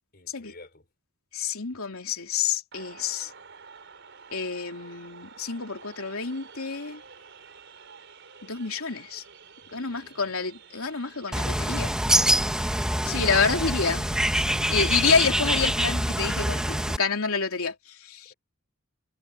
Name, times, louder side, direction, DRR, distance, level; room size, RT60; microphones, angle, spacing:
voice 1, 0.1-0.9 9.6-10.2 12.3-13.1 14.6-14.8, left 3 dB, 45° left, 4.6 m, -51 dB
voice 2, 1.3-3.3 4.3-7.0 8.4-9.2 9.7-12.0 13.0-14.1 14.7-18.3, left 5 dB, 75° left, 3.2 m, -28 dB
sound 1, 2.7-16.9, right 5 dB, 55° right, 5.1 m, -50 dB
Bird, 11.3-17.0, right 1 dB, 5° right, 1.1 m, -25 dB
head